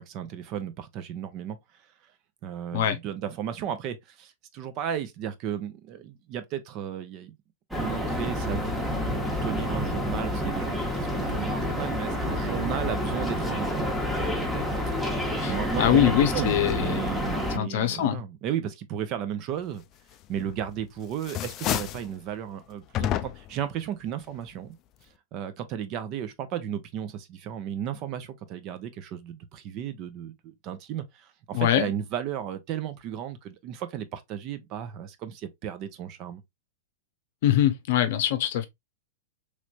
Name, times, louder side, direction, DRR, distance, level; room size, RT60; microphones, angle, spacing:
voice 1, 0.0-1.6 2.4-7.3 7.7-13.8 15.5-19.8 20.3-24.7 25.3-36.4, right 9 dB, 45° right, 0.6 m, -34 dB
sound 1, 7.7-17.6, left 1 dB, ahead, 1.0 m, -29 dB
voice 2, 15.8-17.0 17.5-18.2 31.5-31.9 37.4-38.7, left 11 dB, 60° left, 0.7 m, -23 dB
sound 2, 20.4-20.8 21.1-22.1 22.9-23.6, left 13 dB, 40° left, 0.3 m, -30 dB
3.1 x 3.1 x 2.4 m
hypercardioid pair, 110°, 0 cm